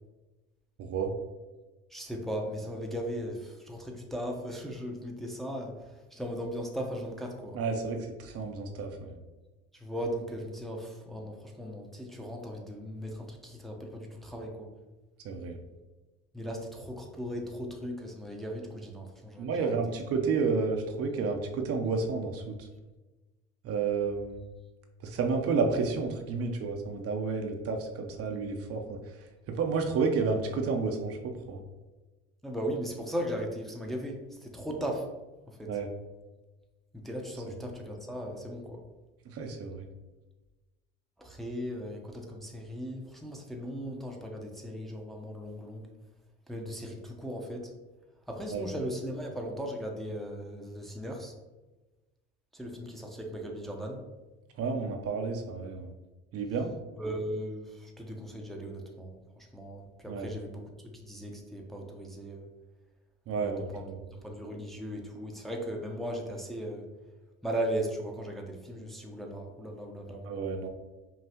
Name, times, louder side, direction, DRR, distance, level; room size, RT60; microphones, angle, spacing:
voice 1, 0.8-1.1 7.5-9.2 15.2-15.6 19.4-22.7 23.6-24.4 25.0-29.0 29.5-31.6 35.7-35.9 39.3-39.9 48.5-48.7 54.6-55.9 56.3-56.7 60.1-60.3 63.3-64.0 70.2-70.7, right 4 dB, 50° right, 3 dB, 0.6 m, -31 dB
voice 2, 1.9-7.6 9.7-14.7 16.3-19.8 32.4-35.1 35.5-35.8 36.9-38.8 41.2-45.8 46.5-47.7 48.3-51.3 52.5-54.0 57.0-62.5 63.4-66.9 67.4-70.4, equal, ahead, 0 dB, 0.7 m, -37 dB
5.5 x 2.4 x 2.9 m, 1.2 s
hypercardioid pair, 80°, 31 cm